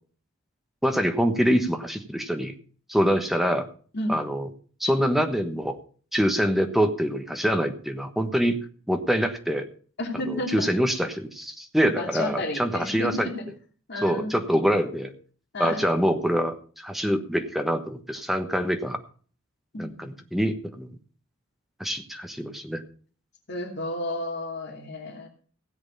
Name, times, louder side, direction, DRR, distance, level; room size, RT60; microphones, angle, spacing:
voice 1, 0.8-2.5 2.9-3.7 4.1-4.5 4.8-5.8 6.1-8.6 8.9-9.7 10.3-13.3 14.0-15.1 15.6-19.0 19.8-20.9 21.8-22.8, equal, ahead, 6 dB, 1.2 m, -25 dB
voice 2, 10.0-10.7 12.0-13.3 13.9-14.4 15.5-15.8 17.0-17.1 19.7-20.2 23.5-25.3, left 1 dB, 50° left, 1 dB, 2.9 m, -32 dB
16.5 x 8.0 x 5.5 m, 0.42 s
head